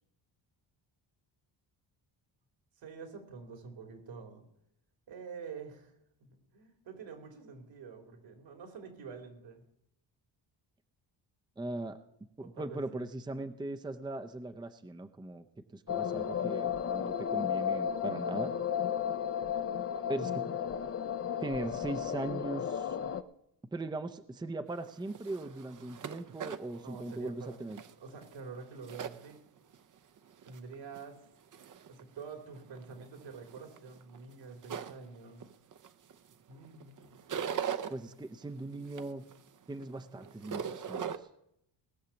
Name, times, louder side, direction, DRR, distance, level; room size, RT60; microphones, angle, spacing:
voice 1, 2.8-4.4 5.1-9.6 12.4-13.0 26.8-29.4 30.4-31.2 31.9-35.4 36.5-37.2, right 5 dB, 75° right, 5 dB, 3.3 m, -47 dB
voice 2, 11.6-12.0 12.4-15.4 15.7-18.5 20.1-20.5 21.4-23.0 23.7-27.8 37.9-39.2 39.7-41.3, right 2 dB, 10° right, 9 dB, 0.7 m, -39 dB
sound 1, 15.9-23.2, left 8 dB, 30° left, 0.7 m, -33 dB
sound 2, 24.7-29.8 30.2-31.0 31.5-32.0 32.5-36.3 36.6-37.9 38.4-41.2, right 8 dB, 45° right, 0.8 m, -41 dB
19.5 x 6.5 x 7.1 m, 0.78 s
cardioid pair, 105°, 45 cm